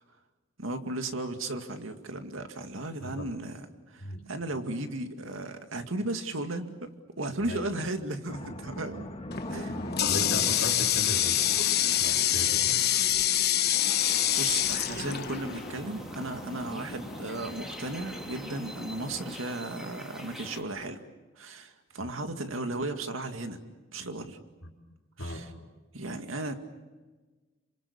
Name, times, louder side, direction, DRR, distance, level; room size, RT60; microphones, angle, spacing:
voice 1, 0.6-9.1 9.5-10.4 14.4-21.0 21.4-23.6 23.9-24.4 25.2-25.5 25.9-26.5, right 2 dB, 85° right, 6 dB, 2.2 m, -35 dB
voice 2, 3.0-3.3 4.0-4.3 7.4-7.6 9.7-11.4 12.0-12.8 22.0-22.1 24.6-24.7 25.2-25.5, left 1 dB, 75° left, -2 dB, 3.4 m, -37 dB
sound 1, 8.3-19.4, left 1 dB, 30° left, 1.7 m, -42 dB
Water tap faucet, 9.3-15.8, left 11 dB, 55° left, 1.2 m, -26 dB
sound 2, 13.7-20.6, equal, ahead, 3.4 m, -44 dB
28.5 x 26.0 x 7.1 m, 1.3 s
head